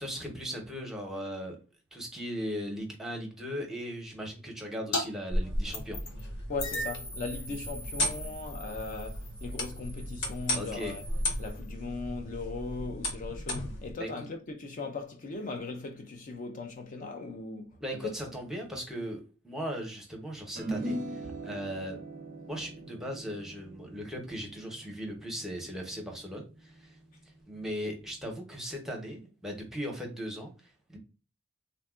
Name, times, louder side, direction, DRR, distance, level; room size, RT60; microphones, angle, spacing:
voice 1, 0.0-1.6 1.9-6.0 10.6-11.0 14.0-14.3 17.8-22.0 22.5-27.0 27.5-31.0, equal, ahead, 0.7 m, -38 dB
sound 1, 4.9-5.1 5.3-6.2 6.6-11.7, left 1 dB, 90° left, 1.0 m, -37 dB
sound 2, 5.4-13.9, left 1 dB, 60° left, 0.8 m, -36 dB
voice 2, 6.5-11.0 11.4-18.2, left 3 dB, 40° left, 0.4 m, -39 dB
sound 3, 20.6-27.1, right 1 dB, 40° right, 0.4 m, -41 dB
3.5 x 2.2 x 2.3 m
head